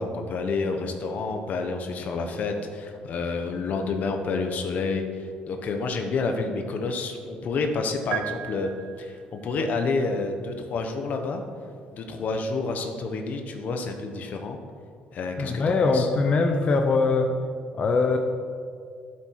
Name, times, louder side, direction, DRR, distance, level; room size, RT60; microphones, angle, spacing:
voice 1, 0.0-8.7 9.0-11.4 11.9-14.6 15.1-16.1, left 3 dB, 55° left, 5 dB, 1.2 m, -29 dB
sound 1, 8.1-9.4, right 12 dB, 85° right, 0.5 m, -35 dB
voice 2, 15.4-17.3 17.8-18.2, left 4 dB, 40° left, 4 dB, 0.8 m, -22 dB
12.5 x 7.5 x 4.8 m, 2.1 s
cardioid pair, 130°, 3 cm